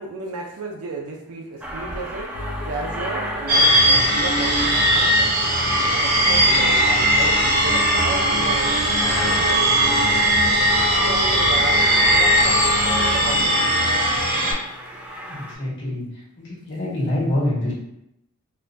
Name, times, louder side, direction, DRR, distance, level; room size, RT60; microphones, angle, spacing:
voice 1, 0.0-2.3 2.7-5.3 5.8-13.9, right 3 dB, 80° right, 0 dB, 0.4 m, -33 dB
Aircraft, 1.6-15.5, right 1 dB, 5° right, 0.3 m, -35 dB
sound 1, 2.3-13.5, left 2 dB, 80° left, 0.5 m, -30 dB
sound 2, 3.5-14.5, right 1 dB, 40° right, 0.6 m, -19 dB
voice 2, 15.3-16.0 16.4-17.7, left 1 dB, 55° left, -7 dB, 1.4 m, -25 dB
4.2 x 2.2 x 2.6 m, 0.83 s
head